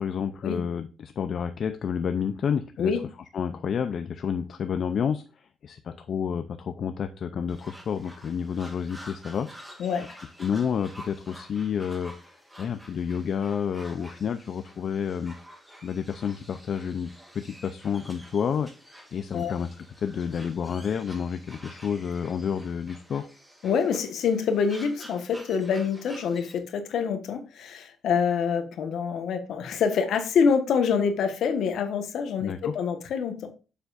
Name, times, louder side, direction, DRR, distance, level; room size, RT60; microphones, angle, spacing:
voice 1, 0.0-2.9 3.3-9.8 10.1-15.3 15.8-18.7 19.1-23.3 32.4-32.7, left 7 dB, 55° left, 9 dB, 0.5 m, -30 dB
sound 1, 7.5-26.6, equal, 10° right, 2.2 m, -49 dB
voice 2, 23.6-33.5, left 6 dB, 75° left, 7 dB, 1.3 m, -26 dB
7.1 x 6.7 x 2.5 m, 0.32 s
cardioid pair, 90°, 0 cm